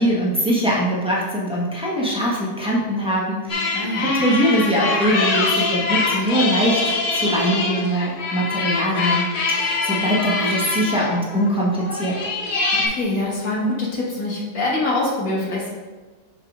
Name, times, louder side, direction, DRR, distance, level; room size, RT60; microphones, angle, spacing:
voice 1, 0.0-12.2, equal, 5° right, -5 dB, 1.3 m, -22 dB
sound 1, 3.5-12.9, left 3 dB, 75° left, 1.8 m, -24 dB
voice 2, 3.7-4.2 12.7-15.7, left 2 dB, 60° left, -4 dB, 2.1 m, -24 dB
5.7 x 4.7 x 5.0 m, 1.3 s
omnidirectional pair, 1.7 m